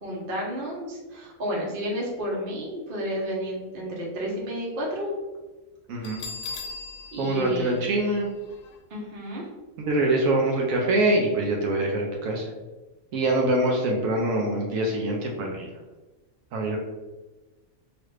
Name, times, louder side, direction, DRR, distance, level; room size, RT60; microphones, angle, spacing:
voice 1, 0.0-5.1 7.1-7.8 8.9-9.4, equal, 45° right, -3 dB, 0.9 m, -31 dB
voice 2, 5.9-6.2 7.2-8.3 9.8-12.4 13.1-15.7 16.5-16.8, right 1 dB, 75° right, 0 dB, 1.0 m, -24 dB
Bell, 6.0-8.7, left 4 dB, 80° left, 1.0 m, -39 dB
3.1 x 2.4 x 3.1 m, 1.2 s
omnidirectional pair, 1.4 m